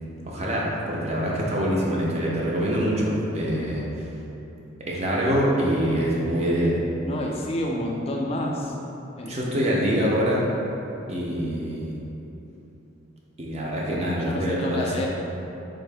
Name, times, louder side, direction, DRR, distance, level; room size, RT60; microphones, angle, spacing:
voice 1, 0.3-3.8 4.9-6.8 9.3-10.4 11.1-12.0 13.4-15.1, equal, 30° right, -4 dB, 0.5 m, -25 dB
voice 2, 7.0-8.7 9.2-10.0 14.3-15.1, left 1 dB, 30° left, -1 dB, 0.3 m, -30 dB
3.6 x 2.6 x 3.3 m, 3.0 s
head